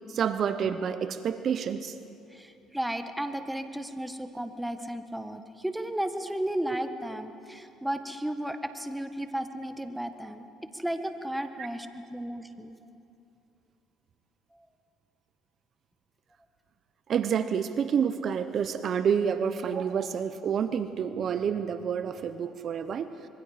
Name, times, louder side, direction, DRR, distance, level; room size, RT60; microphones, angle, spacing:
voice 1, 0.1-2.0 11.6-11.7 17.1-23.1, right 7 dB, 55° right, 11 dB, 0.9 m, -28 dB
voice 2, 2.3-10.4 10.7-12.8 14.5-14.6, right 1 dB, 5° right, 8 dB, 1.4 m, -34 dB
26.0 x 22.5 x 5.1 m, 2.7 s
supercardioid pair, 80°, 0 cm